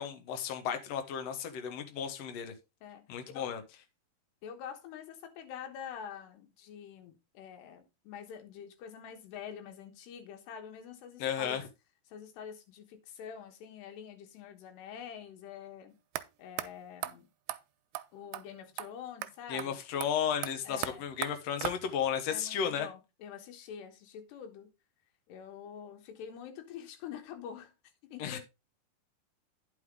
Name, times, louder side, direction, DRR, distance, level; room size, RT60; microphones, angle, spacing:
voice 1, 0.0-2.5 3.1-3.6 11.2-11.6 19.5-22.9 28.2-28.4, left 8 dB, 70° left, 1.5 m, -34 dB
voice 2, 4.4-11.6 12.1-16.0 16.4-17.3 18.1-19.8 20.7-21.1 22.3-24.7 25.3-27.7 28.0-28.4, left 8 dB, 90° left, 3.4 m, -46 dB
sound 1, 16.2-16.3 16.6-16.7 17.0-17.1 17.5-17.6 17.9-18.1 18.3-18.4 18.8-18.9 19.2-19.3 19.6-19.7 20.0-22.1, right 16 dB, 80° right, 2.4 m, -38 dB
9.8 x 5.6 x 3.7 m
omnidirectional pair, 4.7 m